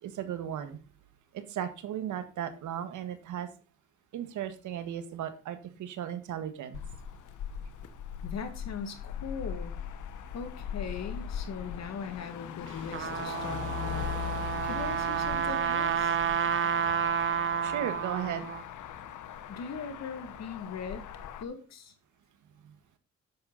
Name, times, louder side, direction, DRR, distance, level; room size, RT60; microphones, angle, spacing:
voice 1, 0.0-0.8 1.3-3.5 4.1-6.8 17.6-18.5 22.6-22.7, right 10 dB, 80° right, 9 dB, 1.7 m, -36 dB
Motor vehicle (road), 6.7-21.4, left 9 dB, 80° left, 1.2 m, -40 dB
voice 2, 8.2-9.7 10.3-14.0 14.6-16.2 19.5-21.0 21.4-21.9, left 6 dB, 60° left, 8 dB, 2.3 m, -40 dB
Trumpet, 12.7-18.6, right 8 dB, 40° right, 0.9 m, -30 dB
10.5 x 7.7 x 4.1 m, 0.34 s
cardioid pair, 90°, 30 cm